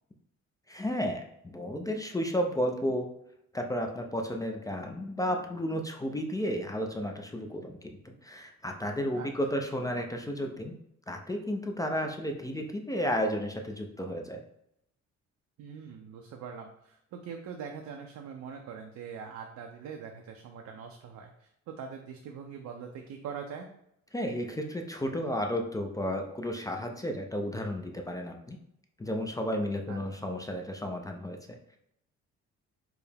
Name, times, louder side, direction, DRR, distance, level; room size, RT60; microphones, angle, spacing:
voice 1, 0.7-3.1 3.5-10.8 11.1-14.4 24.1-28.6 29.0-31.8, equal, 10° left, 3 dB, 0.4 m, -33 dB
voice 2, 15.6-23.7 29.9-30.0, right 6 dB, 65° right, 3 dB, 0.5 m, -43 dB
4.6 x 2.0 x 3.4 m, 0.78 s
cardioid pair, 90°, 30 cm